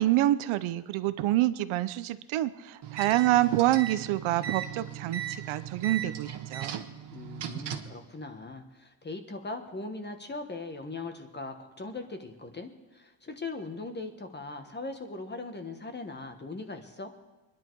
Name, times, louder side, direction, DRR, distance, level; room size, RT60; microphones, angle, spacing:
voice 1, 0.0-6.8, right 15 dB, 80° right, 14 dB, 0.8 m, -27 dB
sound 1, 2.8-8.0, right 9 dB, 55° right, 1.4 m, -37 dB
voice 2, 7.1-17.1, left 3 dB, 20° left, 6 dB, 1.3 m, -40 dB
23.5 x 10.5 x 4.7 m, 1.2 s
cardioid pair, 140°, 48 cm